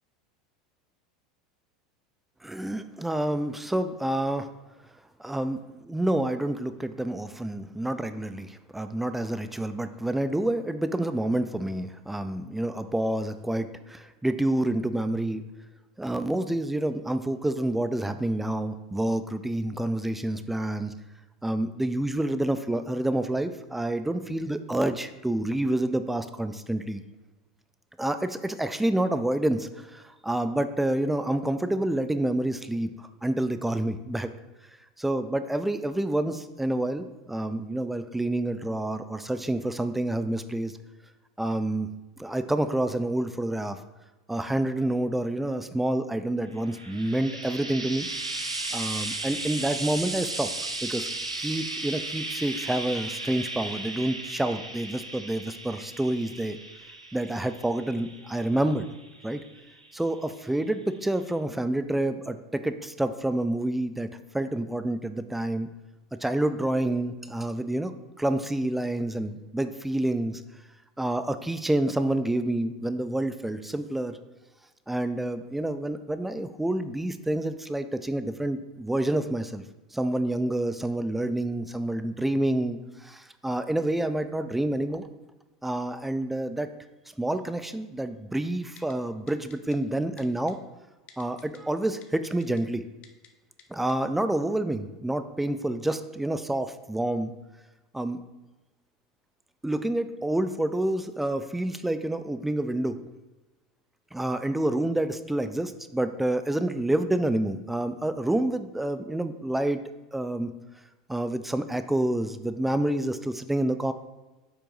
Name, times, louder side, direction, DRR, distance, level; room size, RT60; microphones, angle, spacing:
voice 1, 2.4-4.5 5.2-15.4 16.0-20.9 21.4-27.0 28.0-34.3 35.0-40.8 41.4-41.9 42.2-43.8 44.3-48.1 48.7-50.5 50.8-51.1 51.4-56.6 57.1-58.9 59.2-59.4 59.9-65.7 66.1-67.9 68.2-70.4 71.0-74.2 74.9-79.6 79.9-85.1 85.6-86.7 87.2-90.6 91.2-92.9 93.7-97.3 97.9-98.3 99.6-103.0 104.1-109.8 110.1-110.5 111.1-113.9, right 1 dB, 5° right, 10 dB, 0.4 m, -28 dB
Frying (food), 46.6-60.0 60.9-61.0, right 2 dB, 90° right, 0.7 m, -36 dB
Typing, 88.8-88.9 89.3-89.8 90.2-90.5 91.1-91.6 92.0-92.6 93.0-93.3 93.6-93.7 93.9-94.0, left 8 dB, 40° left, 0.7 m, -52 dB
8.2 x 5.7 x 2.6 m, 1.1 s
figure-of-eight pair, 80°, 3 cm